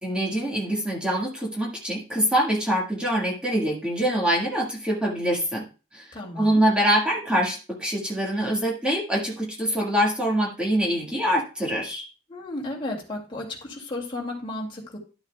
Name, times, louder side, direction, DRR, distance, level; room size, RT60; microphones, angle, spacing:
voice 1, 0.0-5.7 5.9-6.0 6.4-12.1, equal, 5° right, -3 dB, 1.7 m, -24 dB
voice 2, 6.1-6.6 12.3-15.0, left 2 dB, 30° left, -1 dB, 2.3 m, -33 dB
11.5 x 7.1 x 2.3 m, 0.33 s
head